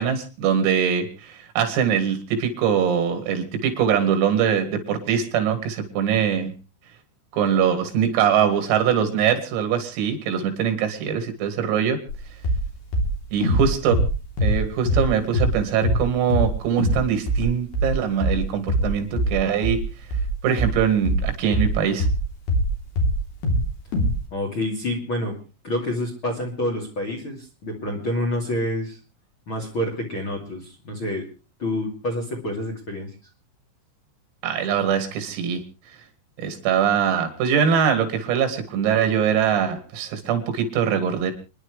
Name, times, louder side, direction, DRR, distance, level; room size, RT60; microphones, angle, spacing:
voice 1, 0.0-6.5 7.3-12.0 13.3-14.1 14.4-19.8 20.4-22.1 34.4-35.6 36.4-41.3, right 8 dB, 85° right, 7 dB, 5.1 m, -22 dB
sound 1, 12.1-12.2 12.5-12.7 12.9-15.1 15.3-15.6 15.8-16.1 16.3-16.5 16.8-17.0 17.3-22.7 23.0-23.7 23.9-24.1, equal, 55° left, 5.0 m, -22 dB
voice 2, 24.3-25.3 25.6-29.0 29.5-31.2 31.6-33.1, left 1 dB, 35° left, -1 dB, 2.4 m, -28 dB
29.5 x 10.5 x 3.3 m, 0.33 s
omnidirectional pair, 5.9 m